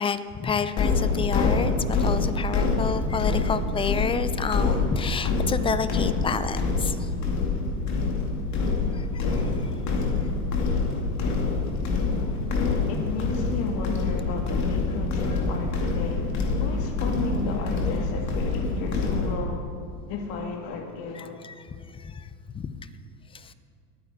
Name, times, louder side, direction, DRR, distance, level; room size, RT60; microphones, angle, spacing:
voice 1, 0.0-7.1 8.9-9.2 9.6-9.7 15.3-15.4 21.2-22.3 22.5-22.8 23.3-23.5, left 6 dB, 15° left, 13 dB, 0.4 m, -30 dB
sound 1, 0.8-19.3, left 3 dB, 40° left, 2.3 m, -26 dB
voice 2, 12.9-19.7 20.1-21.4, left 4 dB, 55° left, 2 dB, 1.9 m, -34 dB
24.0 x 9.2 x 3.6 m, 2.4 s
hypercardioid pair, 105°, 45 cm